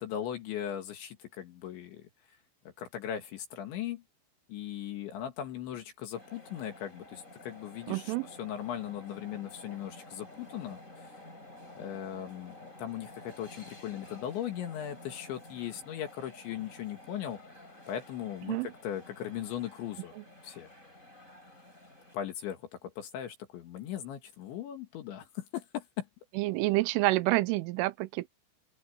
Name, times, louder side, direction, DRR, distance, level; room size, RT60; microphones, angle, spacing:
voice 1, 0.0-2.1 2.8-4.0 4.5-10.8 11.8-17.4 17.9-20.1 20.4-20.7 22.1-26.1, left 10 dB, 70° left, 4.1 m, -38 dB
sound 1, 6.1-22.2, left 2 dB, 15° left, 6.8 m, -51 dB
voice 2, 7.9-8.3 18.5-18.7 20.2-20.3 26.4-28.3, right 20 dB, 80° right, 3.2 m, -28 dB
open air
omnidirectional pair, 5.7 m